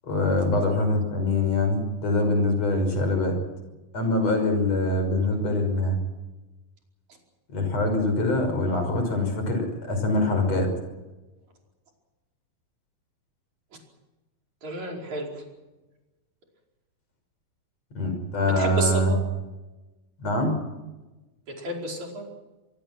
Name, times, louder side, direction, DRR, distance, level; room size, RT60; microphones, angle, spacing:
voice 1, 0.1-3.4 3.9-6.0 7.5-10.7 17.9-19.1 20.2-20.6, left 2 dB, 45° left, 6 dB, 6.8 m, -24 dB
voice 2, 14.6-15.4 18.6-19.2 21.5-22.3, right 1 dB, 50° right, 0 dB, 6.2 m, -31 dB
26.0 x 23.5 x 6.2 m, 1.1 s
omnidirectional pair, 4.3 m